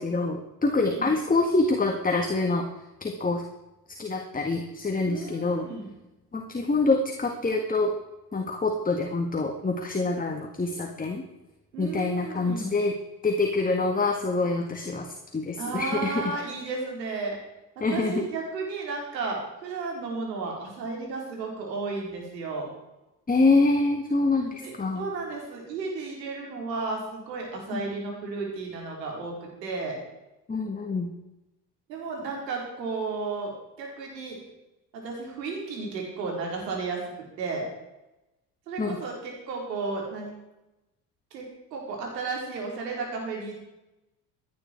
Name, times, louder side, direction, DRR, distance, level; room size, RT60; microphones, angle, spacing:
voice 1, 0.0-2.7 3.0-3.4 4.0-5.7 6.3-7.9 8.3-11.2 11.8-12.9 13.2-16.2 17.8-18.2 23.3-25.1 27.7-27.8 30.5-31.1 38.8-39.0, left 3 dB, 15° left, 3 dB, 1.8 m, -26 dB
voice 2, 0.7-1.1 5.1-5.9 11.7-12.7 15.6-17.4 17.8-22.7 24.4-30.0 31.9-33.5 33.8-34.4 34.9-37.6 38.7-40.3 41.3-43.7, right 4 dB, 85° right, 0 dB, 4.5 m, -33 dB
16.5 x 10.0 x 4.6 m, 0.96 s
hypercardioid pair, 65°, 49 cm